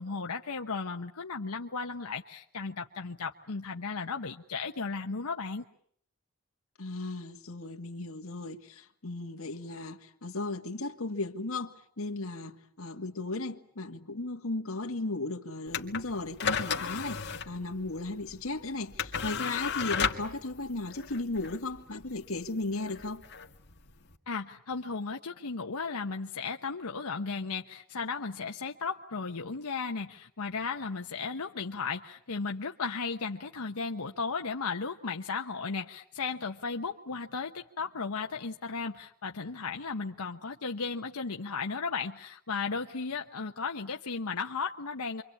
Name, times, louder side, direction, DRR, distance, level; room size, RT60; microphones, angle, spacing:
voice 1, 0.0-5.6 24.3-45.2, left 4 dB, 90° left, 1.1 m, -35 dB
voice 2, 6.8-23.2, left 2 dB, 70° left, 1.9 m, -36 dB
sound 1, 15.7-24.2, left 6 dB, 50° left, 2.0 m, -35 dB
28.0 x 24.5 x 8.5 m
head